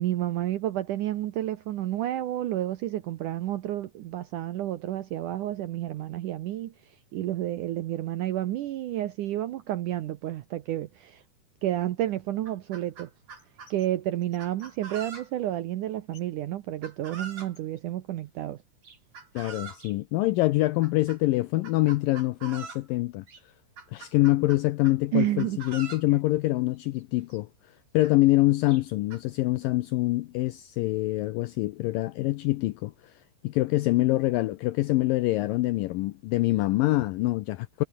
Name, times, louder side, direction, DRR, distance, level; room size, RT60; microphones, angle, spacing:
voice 1, 0.0-6.7 7.1-11.2 11.6-13.1 13.7-18.6 25.1-25.6, right 13 dB, 75° right, 1.9 m, -30 dB
Chicken rooster, 12.3-13.7 14.4-15.5 16.8-17.6 18.8-19.9 20.8-21.2 21.6-22.9 23.3-23.4 23.8-25.0 25.4-26.1 27.0-27.1 27.3-27.4 28.0-28.1 28.7-29.2, right 5 dB, 45° right, 5.4 m, -43 dB
Screwing in a light bulb, 13.4-13.9 14.2-15.6 15.9-16.4 16.7-18.5 18.9-19.7, left 5 dB, 60° left, 8.2 m, -61 dB
voice 2, 19.4-23.3 23.9-27.5 27.9-33.1 33.4-37.8, left 18 dB, 80° left, 2.0 m, -25 dB
omnidirectional pair, 4.7 m